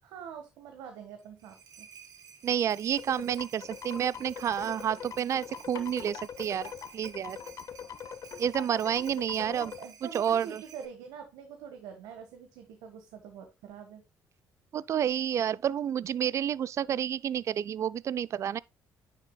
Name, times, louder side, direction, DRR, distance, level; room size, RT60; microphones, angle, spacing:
voice 1, 0.0-1.9 9.4-14.0, right 7 dB, 90° right, 1.4 m, -45 dB
sound 1, 1.2-10.9, right 7 dB, 65° right, 2.0 m, -52 dB
voice 2, 2.4-6.7 6.9-7.4 8.4-9.7 10.0-10.6 14.7-18.6, right 9 dB, 50° right, 0.3 m, -30 dB
sound 2, 3.0-9.8, left 8 dB, 55° left, 0.8 m, -43 dB
Wind chime, 3.1-9.3, left 5 dB, 70° left, 1.9 m, -51 dB
9.8 x 6.6 x 2.2 m
cardioid pair, 85°, 7 cm